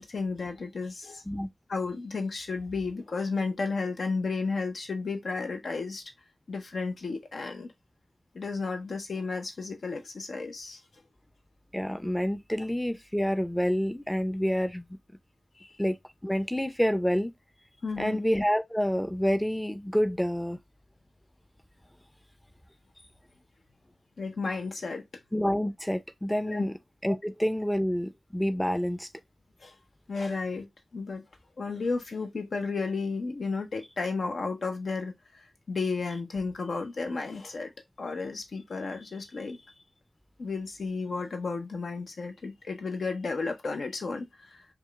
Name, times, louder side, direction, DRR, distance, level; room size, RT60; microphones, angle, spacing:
voice 1, 0.0-1.2 1.7-6.0 6.5-7.7 8.3-10.8 15.6-15.8 17.8-18.2 24.2-25.0 26.5-26.7 29.6-29.8 30.1-30.7 30.9-31.2 31.6-35.1 35.7-37.7 38.0-39.6 40.4-44.7, left 4 dB, 85° left, 0.7 m, -33 dB
voice 2, 11.7-14.8 15.8-16.0 16.2-17.3 18.0-20.6 25.3-26.7 27.0-29.1, equal, 5° left, 0.4 m, -28 dB
4.7 x 2.3 x 2.3 m
wide cardioid pair, 60°, 0 cm